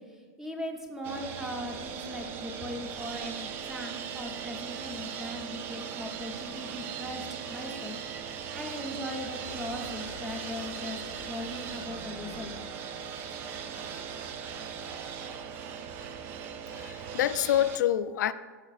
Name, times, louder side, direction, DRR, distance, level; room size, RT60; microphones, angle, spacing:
voice 1, 0.1-12.5, equal, 5° right, 0.7 m, -39 dB
sound 1, 1.0-17.8, right 7 dB, 20° right, 0.3 m, -39 dB
sound 2, 9.4-16.0, left 7 dB, 60° left, 0.7 m, -51 dB
voice 2, 16.7-18.3, left 11 dB, 85° left, 0.4 m, -27 dB
14.0 x 5.6 x 2.4 m
supercardioid pair, 170°, 9 cm